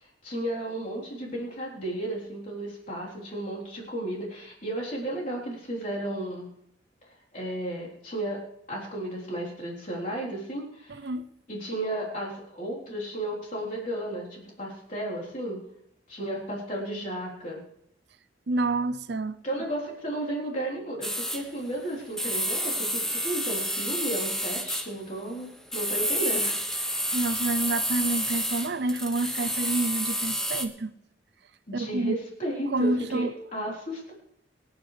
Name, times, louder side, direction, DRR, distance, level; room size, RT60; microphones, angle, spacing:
voice 1, 0.2-6.5 7.3-8.4 8.7-11.0 11.5-15.6 16.1-17.6 19.4-26.6 31.7-34.1, right 1 dB, 45° left, 3.8 m, -33 dB
voice 2, 10.9-11.3 18.5-19.4 27.1-30.9 31.7-32.2 32.7-33.3, right 2 dB, 60° right, 0.6 m, -28 dB
sound 1, 21.0-21.4 22.2-24.9 25.7-30.7, equal, 5° left, 0.9 m, -29 dB
24.5 x 9.6 x 3.4 m
head